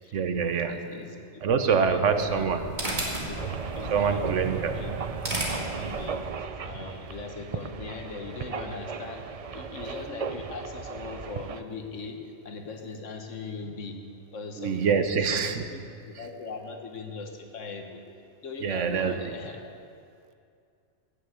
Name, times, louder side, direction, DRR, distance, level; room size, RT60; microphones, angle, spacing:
voice 1, 0.1-1.0 1.4-2.6 3.9-4.8 14.6-15.6 18.6-19.1, right 6 dB, 75° right, 8 dB, 1.2 m, -25 dB
voice 2, 0.7-2.7 3.2-3.4 3.7-4.2 4.7-5.0 5.5-18.0 18.4-19.7, left 4 dB, 80° left, 4 dB, 1.6 m, -40 dB
sound 1, 2.0-6.4, right 1 dB, 35° right, 2.3 m, -35 dB
sound 2, 3.4-11.6, right 6 dB, 55° right, 0.4 m, -36 dB
15.0 x 7.2 x 8.2 m, 2.3 s
omnidirectional pair, 1.3 m